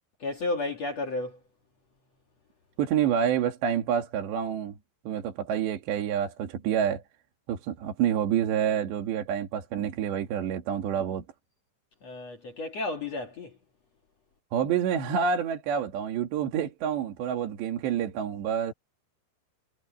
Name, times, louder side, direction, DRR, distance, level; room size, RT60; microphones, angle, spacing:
voice 1, 0.2-1.4 12.0-13.6, left 2 dB, 45° left, 2.3 m, -32 dB
voice 2, 2.8-4.8 5.1-7.0 7.5-11.2 14.5-18.7, right 8 dB, 65° right, 4.2 m, -28 dB
omnidirectional pair, 5.5 m